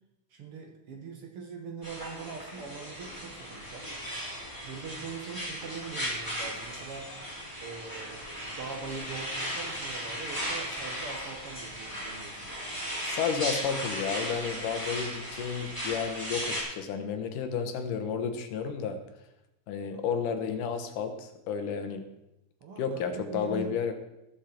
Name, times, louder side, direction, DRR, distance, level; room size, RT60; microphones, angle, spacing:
voice 1, 0.3-3.9 4.6-7.1 7.6-12.4 19.9-20.1 22.6-23.7, right 5 dB, 55° right, 3 dB, 1.8 m, -42 dB
sound 1, 1.8-16.6, equal, 5° right, 3.5 m, -36 dB
voice 2, 13.0-19.0 19.7-22.0 22.8-23.9, left 6 dB, 85° left, 7 dB, 2.8 m, -32 dB
19.5 x 6.8 x 4.4 m, 0.90 s
omnidirectional pair, 3.6 m